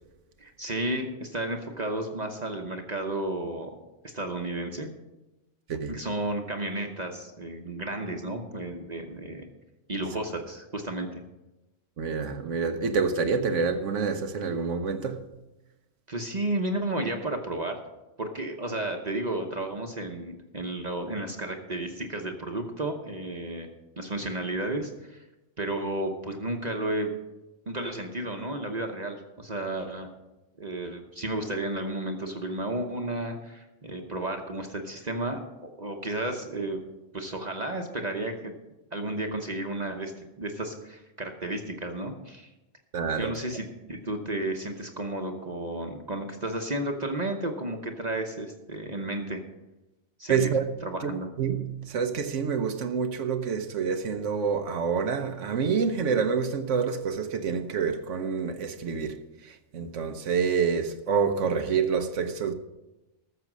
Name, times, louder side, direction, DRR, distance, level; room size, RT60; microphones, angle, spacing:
voice 1, 0.4-3.8 4.1-4.9 5.9-9.5 9.9-11.2 16.1-17.8 18.2-23.7 24.0-25.3 25.6-27.1 27.7-30.1 30.6-36.8 37.1-38.5 38.9-40.1 40.4-42.5 43.2-49.4 50.2-50.5 50.8-51.3, right 1 dB, 40° right, 1.0 m, -32 dB
voice 2, 12.0-15.2 42.9-43.3 50.3-50.7 51.0-51.1 51.4-59.2 59.5-62.5, right 6 dB, 90° right, 1.2 m, -27 dB
13.5 x 6.9 x 6.1 m
omnidirectional pair, 1.2 m